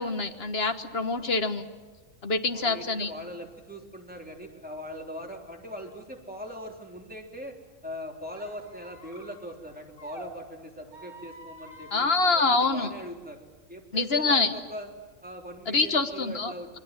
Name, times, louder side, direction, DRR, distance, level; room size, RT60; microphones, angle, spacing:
voice 1, 0.0-1.6 2.2-3.1 11.9-12.9 13.9-14.5 15.7-16.8, left 3 dB, 45° left, 8 dB, 1.7 m, -26 dB
voice 2, 2.5-7.5 7.8-13.4 13.7-14.9 15.2-16.8, equal, 5° right, 1 dB, 3.4 m, -41 dB
Squeak, 8.3-10.3 10.9-13.0, equal, 40° right, 4.3 m, -48 dB
27.5 x 22.5 x 7.6 m, 1.4 s
omnidirectional pair, 1.4 m